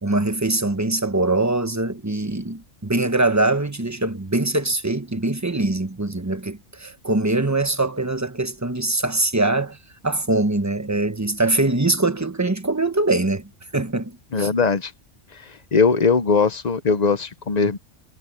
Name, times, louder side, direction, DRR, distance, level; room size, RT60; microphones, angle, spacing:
voice 1, 0.0-9.8 10.0-14.5, right 2 dB, 15° right, 1.0 m, -23 dB
voice 2, 14.3-14.9 15.7-17.8, left 4 dB, 40° left, 0.8 m, -19 dB
omnidirectional pair, 1.3 m